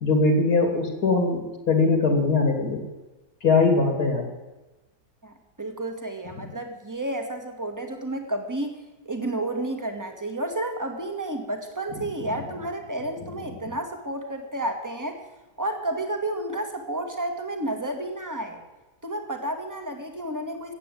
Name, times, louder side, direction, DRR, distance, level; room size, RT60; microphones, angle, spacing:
voice 1, 0.0-2.8 3.4-4.3, left 3 dB, 60° left, 4 dB, 2.7 m, -21 dB
voice 2, 5.2-8.7 9.0-15.2 15.6-18.6 19.0-20.7, right 1 dB, 10° right, 4 dB, 1.6 m, -31 dB
15.0 x 8.5 x 9.0 m, 1.1 s
omnidirectional pair, 1.9 m